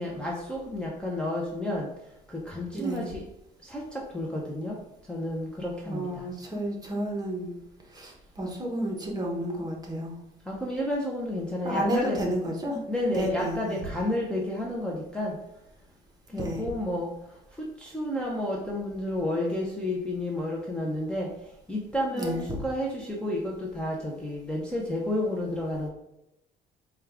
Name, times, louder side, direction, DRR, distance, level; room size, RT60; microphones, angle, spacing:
voice 1, 0.0-1.9 2.5-3.2 3.6-4.8 5.1-6.3 10.5-12.2 12.9-15.3 16.3-17.1 17.8-21.3 21.7-25.9, left 1 dB, 5° left, -3 dB, 0.6 m, -31 dB
voice 2, 2.7-3.0 5.9-7.5 7.9-10.2 11.6-12.8 13.1-13.8 16.3-16.6 22.1-22.4, equal, 25° right, 0 dB, 1.0 m, -31 dB
4.6 x 2.3 x 3.4 m, 0.85 s
cardioid pair, 110°, 17 cm